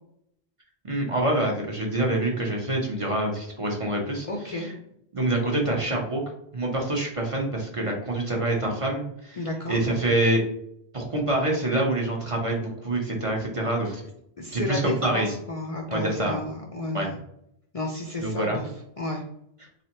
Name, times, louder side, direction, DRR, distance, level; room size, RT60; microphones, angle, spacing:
voice 1, 0.8-4.7 5.1-6.2 6.5-9.4 9.7-10.4 10.9-14.0 14.5-15.3 15.9-16.4 16.9-17.1 18.2-18.6, right 1 dB, 35° right, -1 dB, 0.7 m, -26 dB
voice 2, 4.3-4.7 9.4-9.8 13.9-14.0 14.4-17.2 17.7-18.7 19.0-19.2, left 2 dB, 45° left, 0 dB, 0.5 m, -32 dB
3.9 x 3.3 x 2.9 m, 0.76 s
omnidirectional pair, 1.1 m